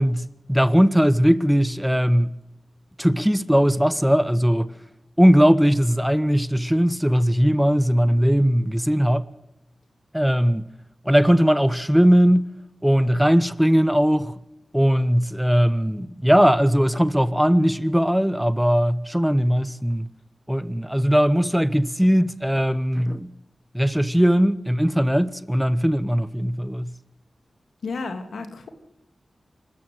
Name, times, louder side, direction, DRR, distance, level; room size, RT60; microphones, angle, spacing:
voice 1, 0.0-2.3 3.0-4.7 5.2-9.3 10.1-10.6 11.0-12.5 12.8-14.3 14.7-20.1 20.5-23.3 23.7-26.9, equal, 5° right, 1.1 m, -19 dB
voice 2, 27.8-28.7, left 4 dB, 85° left, 2.8 m, -32 dB
26.0 x 14.0 x 7.9 m
cardioid pair, 50°, 0 cm